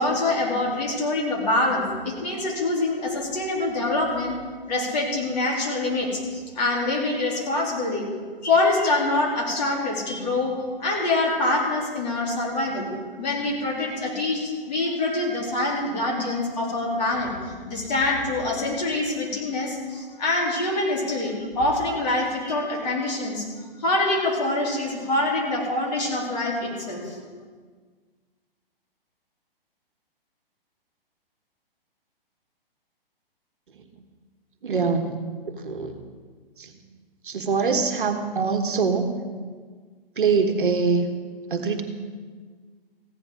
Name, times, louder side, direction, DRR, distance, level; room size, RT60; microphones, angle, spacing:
voice 1, 0.0-4.4 4.7-8.0 8.4-12.9 13.2-23.5 23.8-27.2, left 2 dB, 45° left, -3 dB, 3.5 m, -25 dB
voice 2, 34.6-36.0 36.6-36.7 37.2-39.1 40.1-41.1 41.5-41.8, right 5 dB, 60° right, 6 dB, 1.4 m, -24 dB
15.5 x 10.5 x 5.0 m, 1.5 s
figure-of-eight pair, 125°, 30 cm